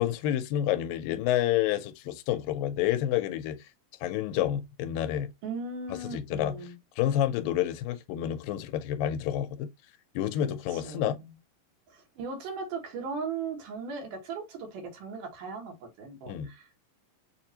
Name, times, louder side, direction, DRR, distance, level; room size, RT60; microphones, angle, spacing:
voice 1, 0.0-3.6 4.0-5.3 6.0-6.5 7.0-9.7 10.2-11.2 16.3-16.5, left 11 dB, 85° left, 2.3 m, -29 dB
voice 2, 5.4-6.8 10.7-11.3 11.9-16.8, right 4 dB, 70° right, 2.7 m, -38 dB
7.0 x 2.5 x 2.7 m
omnidirectional pair, 4.0 m